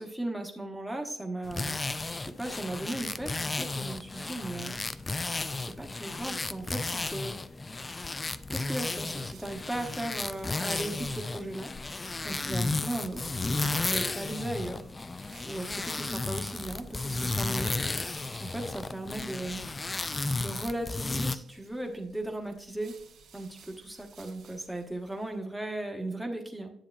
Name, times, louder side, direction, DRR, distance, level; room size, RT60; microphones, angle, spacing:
voice 1, 0.0-1.8 2.2-4.8 5.6-7.7 8.5-11.7 12.2-14.9 15.4-18.1 18.4-19.6 20.4-22.9 23.3-26.7, right 1 dB, 5° right, 2 dB, 1.1 m, -37 dB
sound 1, 1.4-21.3, left 3 dB, 25° left, 0.3 m, -33 dB
sound 2, 9.0-25.5, right 6 dB, 75° right, 1.8 m, -58 dB
10.0 x 6.9 x 2.4 m, 0.77 s
cardioid pair, 90°, 0 cm